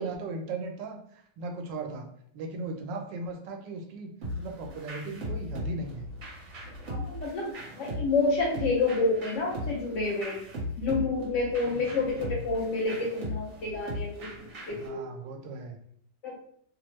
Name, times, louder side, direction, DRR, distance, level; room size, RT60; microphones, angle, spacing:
voice 1, 0.0-2.0 2.3-4.1 4.4-6.1 11.6-12.4 14.7-15.8, right 3 dB, 85° right, 3 dB, 1.3 m, -38 dB
sound 1, 4.2-14.9, left 1 dB, 55° right, 1.3 m, -38 dB
voice 2, 6.9-10.4 10.8-15.1 16.2-16.3, left 3 dB, 90° left, -2 dB, 0.6 m, -29 dB
3.2 x 2.0 x 3.0 m, 0.64 s
omnidirectional pair, 1.9 m